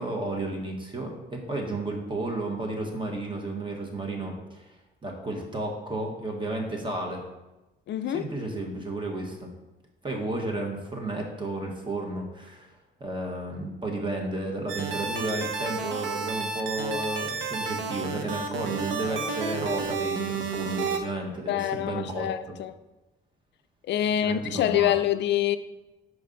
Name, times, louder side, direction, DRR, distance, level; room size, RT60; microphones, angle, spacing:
voice 1, 0.0-4.7 5.0-7.2 8.1-9.5 10.0-12.7 13.0-22.3 24.2-24.9, right 2 dB, 25° right, 1.2 m, -32 dB
voice 2, 7.9-8.3 21.5-22.7 23.9-25.6, left 11 dB, 60° left, 0.4 m, -26 dB
sound 1, 14.7-21.0, right 5 dB, 70° right, 0.7 m, -31 dB
5.2 x 4.8 x 3.8 m
cardioid pair, 90°, 20 cm